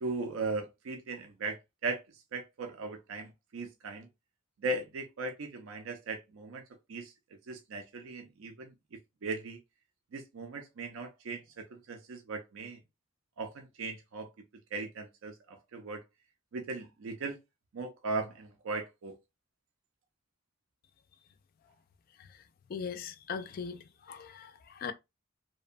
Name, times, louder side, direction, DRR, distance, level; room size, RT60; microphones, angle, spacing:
voice 1, 0.0-2.0 2.3-4.1 4.6-6.6 6.9-7.1 7.5-8.7 9.2-9.6 10.1-12.8 13.4-14.3 14.7-16.0 16.5-17.4 17.7-19.2, right 3 dB, 70° right, 0.4 m, -38 dB
voice 2, 22.7-23.8 24.1-24.9, left 6 dB, 45° left, 0.3 m, -39 dB
2.6 x 2.1 x 2.4 m
head